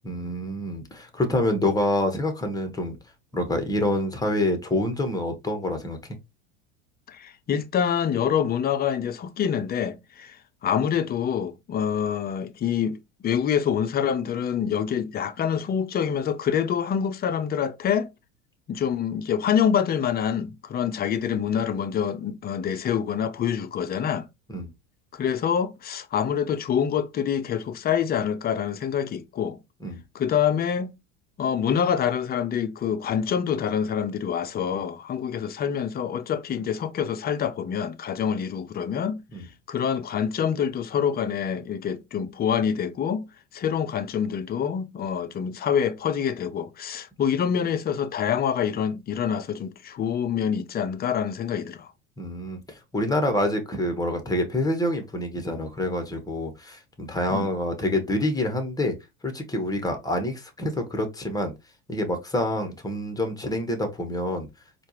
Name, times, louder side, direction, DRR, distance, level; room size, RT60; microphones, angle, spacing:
voice 1, 0.0-3.0 3.3-6.2 24.5-24.7 29.8-30.0 39.3-39.4 52.2-59.0 59.2-61.5 61.9-64.5, left 1 dB, 10° left, 1.1 m, -27 dB
voice 2, 7.1-10.4 10.6-18.1 18.7-24.3 25.1-29.6 30.1-30.9 31.4-39.2 39.7-43.3 43.5-51.9 57.3-57.5, left 8 dB, 25° left, 0.5 m, -26 dB
4.3 x 2.4 x 2.9 m
hypercardioid pair, 95°, 35 cm